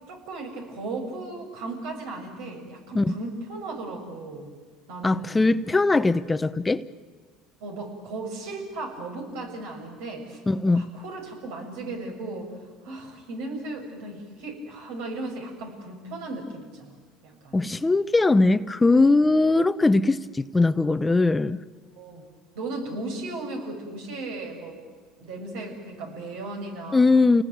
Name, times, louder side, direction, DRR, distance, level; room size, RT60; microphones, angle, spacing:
voice 1, 0.1-4.5 4.9-5.5 7.6-10.4 10.7-12.5 12.8-17.0 17.2-17.6 22.0-22.2 22.5-24.8 25.2-27.0, right 2 dB, 80° right, 6.8 m, -36 dB
voice 2, 5.0-6.8 10.5-10.9 17.5-21.6 26.9-27.4, left 3 dB, 15° left, 0.8 m, -20 dB
28.5 x 19.5 x 9.4 m
supercardioid pair, 90°, 0 cm